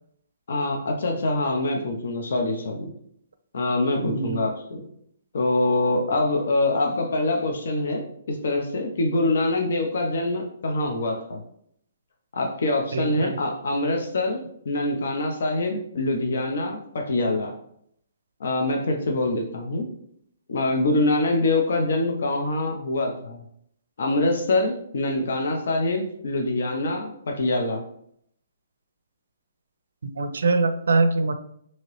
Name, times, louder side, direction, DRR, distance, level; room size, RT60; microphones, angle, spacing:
voice 1, 0.5-2.9 3.5-4.8 5.3-11.4 12.3-17.5 18.4-19.9 20.5-23.4 24.0-27.8, left 2 dB, 60° left, 2 dB, 0.5 m, -25 dB
voice 2, 4.0-4.4 12.9-13.4 30.0-31.3, right 3 dB, 85° right, 10 dB, 0.4 m, -23 dB
2.9 x 2.8 x 3.0 m, 0.70 s
hypercardioid pair, 175°, 0 cm